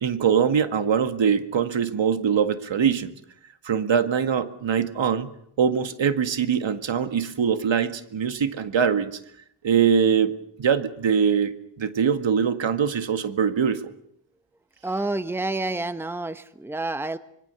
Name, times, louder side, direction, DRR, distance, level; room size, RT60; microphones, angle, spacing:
voice 1, 0.0-3.1 3.6-5.3 5.6-9.2 9.6-13.9, right 7 dB, 85° right, 10 dB, 1.9 m, -23 dB
voice 2, 14.8-17.2, right 2 dB, 5° right, 12 dB, 1.1 m, -28 dB
26.0 x 22.5 x 6.9 m, 0.73 s
wide cardioid pair, 155°, 44 cm